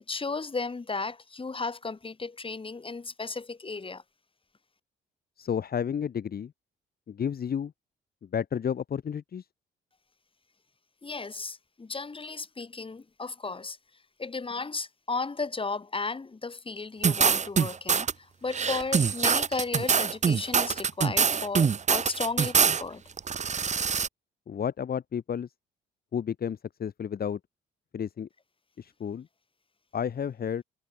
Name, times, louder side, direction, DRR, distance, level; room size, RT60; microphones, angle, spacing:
voice 1, 0.1-4.0 11.0-13.8 14.2-23.0, left 4 dB, 25° left, 7.2 m, -34 dB
voice 2, 5.4-6.5 7.1-7.7 8.3-9.4 24.5-25.5 26.1-27.4 27.9-28.3 28.8-29.3 29.9-30.6, left 8 dB, 50° left, 2.2 m, -31 dB
sound 1, 17.0-18.1 18.5-22.8 23.2-24.1, right 6 dB, 35° right, 1.2 m, -24 dB
cardioid pair, 90°, 20 cm